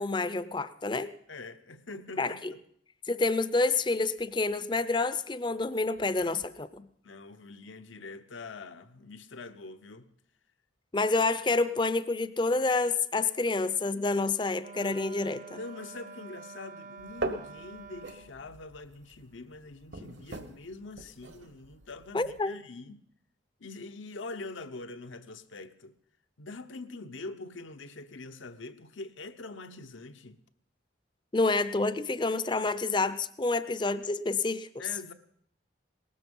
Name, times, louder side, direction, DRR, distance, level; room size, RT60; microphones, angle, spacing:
voice 1, 0.0-1.1 2.2-2.5 3.1-6.8 10.9-15.6 22.1-22.6 31.3-34.7, left 3 dB, 25° left, 0.5 m, -28 dB
voice 2, 1.3-2.4 7.0-10.1 15.6-23.0 23.6-25.9 26.4-30.4 34.8-35.1, left 3 dB, 80° left, 0.9 m, -44 dB
Wind instrument woodwind instrument, 14.6-18.4, right 4 dB, 40° right, 0.7 m, -47 dB
sound 1, 17.0-22.4, right 2 dB, 65° right, 1.2 m, -41 dB
18.5 x 13.0 x 5.4 m
head